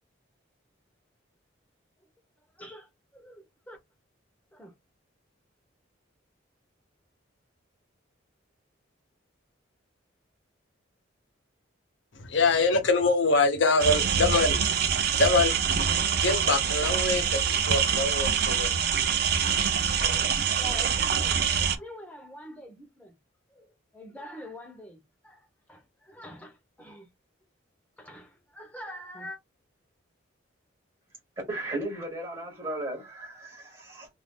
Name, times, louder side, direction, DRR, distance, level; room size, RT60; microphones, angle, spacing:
voice 1, 2.6-3.8 4.5-4.7 19.9-23.2 23.5-27.1 28.0-29.4, equal, 5° left, 0.8 m, -45 dB
voice 2, 12.2-15.5 16.1-18.7, left 3 dB, 65° left, 0.8 m, -25 dB
sound 1, 13.8-21.8, right 7 dB, 50° right, 0.5 m, -25 dB
voice 3, 31.5-34.1, right 1 dB, 25° right, 1.0 m, -35 dB
2.6 x 2.6 x 3.4 m
head